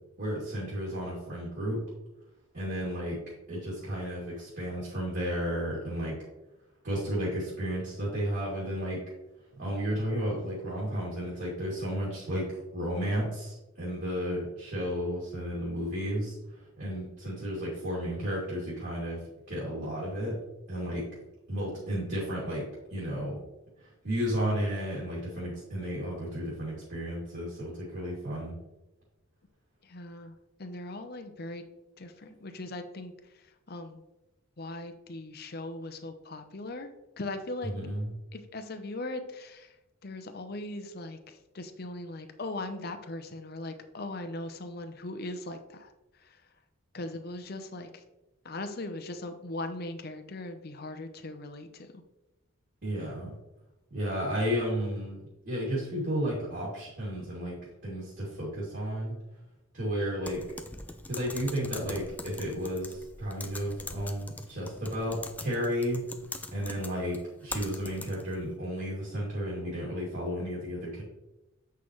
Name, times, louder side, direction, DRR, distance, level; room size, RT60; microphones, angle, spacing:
voice 1, 0.2-1.8 2.5-3.2 3.5-6.1 6.8-9.0 9.6-16.3 16.8-19.2 19.5-20.3 20.7-21.0 21.5-22.6 22.9-23.4 24.0-28.6 37.6-38.1 52.8-53.3 53.9-57.6 57.8-59.2 59.7-60.4 61.1-66.0 66.5-71.0, equal, 50° right, -7 dB, 2.5 m, -33 dB
voice 2, 29.9-30.3 30.6-31.6 32.0-33.1 33.7-34.0 34.6-36.9 37.2-37.7 38.3-39.7 40.0-45.9 46.9-47.9 48.4-51.9, left 2 dB, 45° left, 8 dB, 0.7 m, -39 dB
Typing, 60.2-68.4, left 2 dB, 10° left, 0.3 m, -42 dB
8.4 x 5.7 x 3.1 m, 0.97 s
head